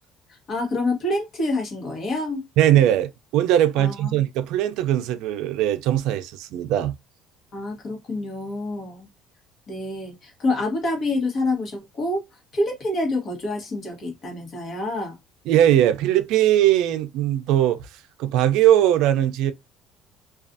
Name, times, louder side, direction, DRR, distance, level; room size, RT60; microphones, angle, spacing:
voice 1, 0.3-2.4 3.8-4.1 7.5-9.1 9.7-15.2, left 2 dB, 40° left, 1.1 m, -27 dB
voice 2, 2.6-7.0 15.5-19.5, right 12 dB, 75° right, 0.3 m, -20 dB
2.4 x 2.3 x 2.5 m
cardioid pair, 150°, 0 cm